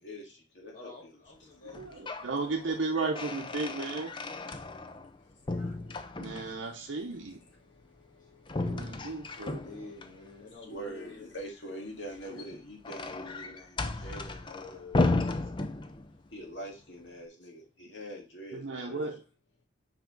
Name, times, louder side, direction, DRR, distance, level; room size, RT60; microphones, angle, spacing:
voice 1, 0.0-0.9 1.7-1.8 5.6-6.2 7.3-9.0 9.3-9.4 10.7-15.3 16.3-19.1, equal, 70° left, 1 dB, 2.0 m, -45 dB
voice 2, 0.7-4.6 8.1-8.3 9.1-11.3, left 3 dB, 40° left, -1 dB, 1.6 m, -51 dB
sound 1, 1.7-2.3 2.7-5.2 5.5-6.7 8.5-10.1 12.1-16.3, left 2 dB, 25° left, 0.5 m, -34 dB
voice 3, 2.2-4.1 6.1-7.4 8.6-9.6 14.6-14.8 18.5-19.2, right 3 dB, 75° right, 1 dB, 0.8 m, -34 dB
5.2 x 4.9 x 3.9 m, 0.30 s
head